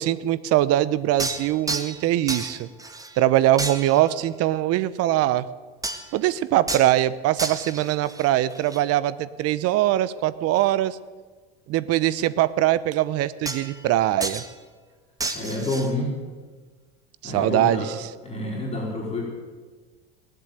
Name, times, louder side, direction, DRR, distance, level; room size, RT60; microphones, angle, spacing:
voice 1, 0.0-2.7 3.2-5.4 6.1-11.0 11.7-14.4 17.2-18.1, right 14 dB, 50° right, 17 dB, 0.9 m, -22 dB
sound 1, 1.2-2.0 2.3-3.2 3.6-4.1 5.8-6.2 6.7-6.9 7.4-8.8 13.5-13.9 14.2-14.5 15.2-15.9, right 3 dB, 10° right, 1.6 m, -31 dB
voice 2, 15.3-16.1 17.2-17.9 18.2-19.2, left 2 dB, 20° left, -3 dB, 4.7 m, -28 dB
19.5 x 7.9 x 9.1 m, 1.4 s
hypercardioid pair, 95°, 31 cm